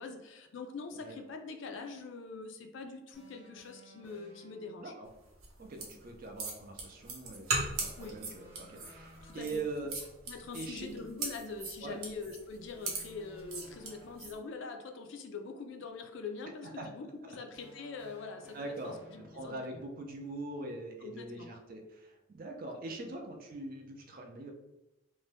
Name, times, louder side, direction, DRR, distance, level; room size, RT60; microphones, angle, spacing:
voice 1, 0.0-4.9 8.0-8.2 9.2-9.6 10.3-19.8 21.0-21.5, left 4 dB, 60° left, 5 dB, 0.3 m, -44 dB
sound 1, 3.1-5.0 7.9-9.8 12.7-14.7 17.5-19.7, left 1 dB, 10° right, 0.7 m, -57 dB
sound 2, 5.4-14.4, right 3 dB, 90° right, 0.7 m, -39 dB
voice 2, 5.6-9.9 10.5-10.9 11.8-12.0 16.8-16.9 17.3-17.4 18.5-24.5, right 2 dB, 40° right, 2 dB, 0.4 m, -42 dB
2.6 x 2.1 x 3.3 m, 0.98 s
head